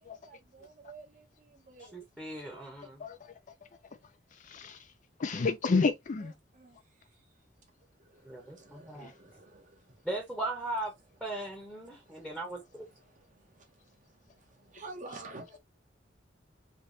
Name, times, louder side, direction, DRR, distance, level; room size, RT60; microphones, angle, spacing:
voice 1, 0.0-2.0 6.2-6.8 8.0-10.3 11.3-11.6 11.8-12.6 12.9-14.0 14.4-15.6, right 3 dB, 45° right, 1.1 m, -51 dB
voice 2, 1.8-3.0 8.2-9.1 10.0-10.9 11.2-12.9, right 2 dB, 5° right, 0.9 m, -38 dB
voice 3, 4.4-4.8 5.2-6.3 9.0-9.1, left 4 dB, 45° left, 0.4 m, -29 dB
3.3 x 2.9 x 2.6 m
head